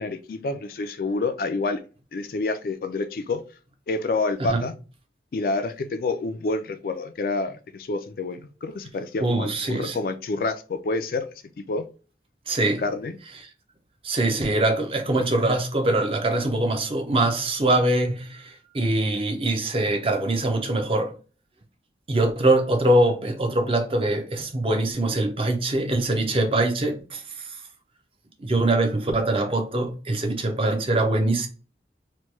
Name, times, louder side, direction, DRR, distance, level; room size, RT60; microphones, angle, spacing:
voice 1, 0.0-1.8 2.1-3.4 3.9-4.7 5.3-11.3 11.6-11.8 12.8-13.2, left 3 dB, 55° left, 0.3 m, -28 dB
voice 2, 9.2-10.0 12.5-12.8 14.0-21.2 22.1-27.5 28.4-31.5, right 2 dB, 30° right, 0.5 m, -23 dB
3.0 x 2.2 x 3.2 m
head